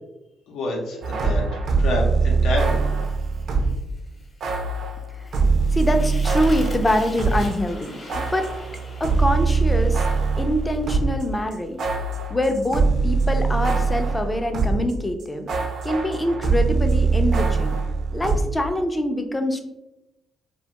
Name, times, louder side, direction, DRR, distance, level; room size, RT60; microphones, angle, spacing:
voice 1, 0.5-2.8, left 2 dB, 90° left, -1 dB, 0.7 m, -28 dB
sound 1, 1.0-3.9 4.4-7.6 7.8-14.9 15.2-18.4, right 4 dB, 60° right, 0.4 m, -22 dB
Fire, 2.6-11.9, left 1 dB, 35° left, 0.8 m, -44 dB
voice 2, 5.7-8.5 9.0-10.1 10.4-11.8 12.3-15.5 15.8-17.8 18.1-19.6, left 1 dB, 15° left, 6 dB, 0.4 m, -24 dB
2.5 x 2.2 x 2.8 m, 0.94 s
cardioid pair, 90°, 0 cm